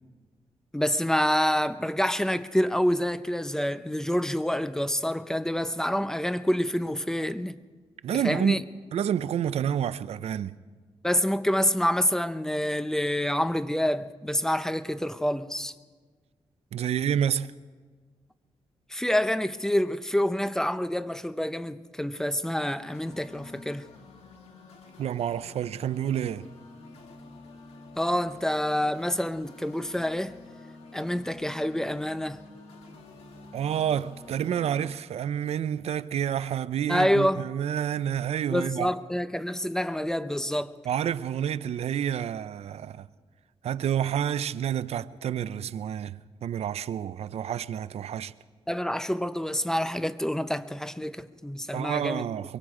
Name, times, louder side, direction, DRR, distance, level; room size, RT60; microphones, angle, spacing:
voice 1, 0.7-7.6 8.2-8.6 11.0-15.7 18.9-23.9 28.0-30.4 30.9-32.4 36.9-37.4 38.5-40.7 48.7-52.3, equal, 5° left, 0.7 m, -27 dB
voice 2, 8.0-10.6 16.7-17.5 25.0-26.5 33.5-38.9 40.9-43.1 43.6-48.3 51.7-52.6, right 9 dB, 90° right, 0.5 m, -29 dB
sound 1, 22.6-34.9, left 3 dB, 90° left, 2.4 m, -49 dB
23.5 x 23.0 x 4.9 m
cardioid pair, 85°, 10 cm